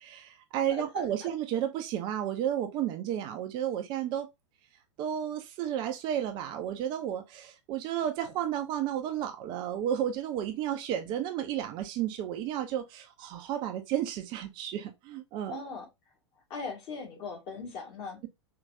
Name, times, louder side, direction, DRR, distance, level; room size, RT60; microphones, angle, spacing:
voice 1, 0.1-4.3 5.0-15.6, right 10 dB, 30° right, 0.6 m, -32 dB
voice 2, 15.5-15.9 16.5-18.2, left 4 dB, 35° left, 2.1 m, -39 dB
4.7 x 3.0 x 2.6 m
figure-of-eight pair, 100°, 15 cm